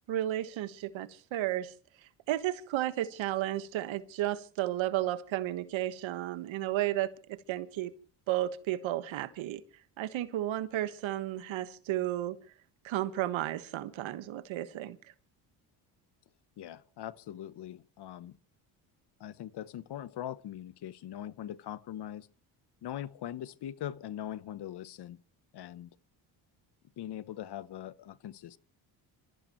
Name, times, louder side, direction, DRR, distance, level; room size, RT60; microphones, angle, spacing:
voice 1, 0.1-1.7 2.3-7.1 7.5-7.9 8.3-9.6 10.0-12.4 12.8-15.0, right 14 dB, 75° right, 1.5 m, -33 dB
voice 2, 16.6-18.4 19.2-22.3 22.8-25.2 25.5-25.9 27.0-28.6, left 11 dB, 55° left, 0.9 m, -41 dB
27.5 x 15.0 x 3.1 m
supercardioid pair, 75°, 47 cm